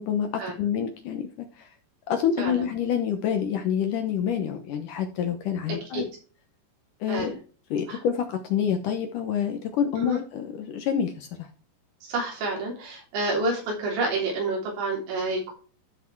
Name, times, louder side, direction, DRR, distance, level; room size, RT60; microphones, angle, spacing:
voice 1, 0.0-1.7 2.1-6.1 7.0-7.4 7.7-11.5, left 8 dB, 80° left, 6 dB, 1.8 m, -27 dB
voice 2, 5.7-6.1 7.1-7.3 7.9-8.0 10.0-10.2 12.0-15.5, right 2 dB, 80° right, -1 dB, 5.6 m, -29 dB
13.0 x 5.9 x 4.6 m, 0.37 s
omnidirectional pair, 5.2 m